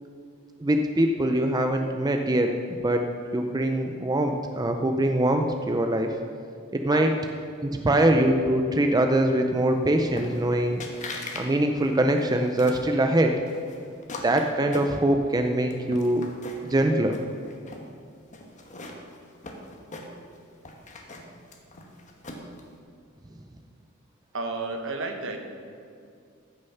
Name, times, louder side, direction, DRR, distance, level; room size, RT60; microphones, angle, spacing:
voice 1, 0.6-3.1 3.3-6.1 6.7-7.1 7.6-10.8 11.3-13.3 14.2-16.2 16.6-17.2, right 1 dB, 20° right, 4 dB, 0.5 m, -23 dB
sound 1, 10.2-10.5 10.8-11.5 11.8-12.9 13.5-15.3 15.7-16.7 17.1-17.9 18.3-20.4 20.6-22.6, left 2 dB, 35° left, 1.3 m, -40 dB
voice 2, 24.3-25.4, right 3 dB, 65° right, 4 dB, 1.3 m, -32 dB
14.5 x 6.5 x 5.7 m, 2.3 s
head